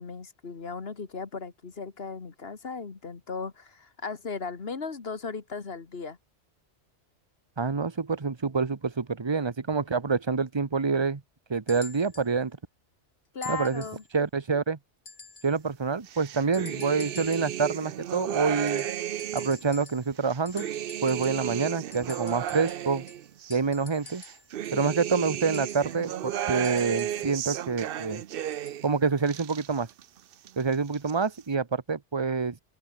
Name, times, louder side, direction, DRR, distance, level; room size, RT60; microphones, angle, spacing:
voice 1, 0.0-6.2 13.3-14.0 24.7-25.0, left 4 dB, 60° left, 1.9 m, -37 dB
voice 2, 7.6-11.2 11.5-12.5 13.5-13.8 14.1-14.8 15.4-18.8 19.3-20.7 21.0-23.0 23.5-24.2 24.7-28.2 28.8-29.9 30.6-32.6, right 5 dB, 25° right, 1.0 m, -27 dB
sound 1, 11.7-12.3 13.4-14.1 15.1-15.6 16.5-17.6 18.7-20.2 20.5-21.5 21.9-24.5 25.5-27.3 28.5-28.9 29.8-29.9, left 4 dB, 80° left, 3.0 m, -48 dB
sound 2, 16.1-19.7 20.2-23.6 24.1-28.9 29.2-30.1 30.3-31.1, right 11 dB, 60° right, 0.7 m, -34 dB
open air
omnidirectional pair, 1.2 m